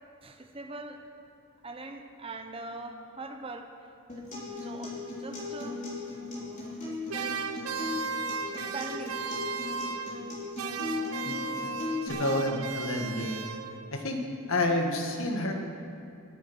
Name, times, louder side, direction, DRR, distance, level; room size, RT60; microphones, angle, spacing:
voice 1, 0.2-1.0 1.6-3.9 4.2-5.8 6.1-6.8 7.1-7.5 8.2-9.2, right 2 dB, 25° right, 5 dB, 0.9 m, -43 dB
Acoustic guitar, 4.1-12.1, left 3 dB, 35° left, 3.4 m, -37 dB
sound 1, 7.1-10.3 10.6-14.0, right 5 dB, 85° right, 0.8 m, -35 dB
voice 2, 12.0-13.4 13.9-14.2 14.5-15.5, left 1 dB, 70° left, 2 dB, 1.7 m, -29 dB
19.5 x 8.6 x 6.3 m, 2.6 s
head